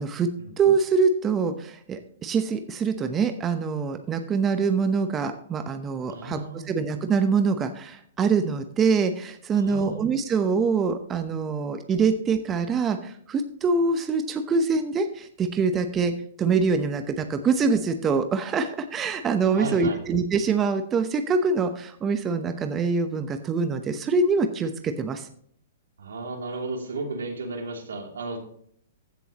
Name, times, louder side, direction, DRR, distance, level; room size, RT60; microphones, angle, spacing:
voice 1, 0.6-16.1 16.4-25.3, right 5 dB, 20° right, 7 dB, 0.9 m, -24 dB
voice 2, 6.1-6.7 9.5-10.0 19.5-20.0 26.0-28.4, right 2 dB, 85° right, 2 dB, 3.0 m, -34 dB
15.0 x 7.0 x 3.0 m, 0.62 s
hypercardioid pair, 130°, 0 cm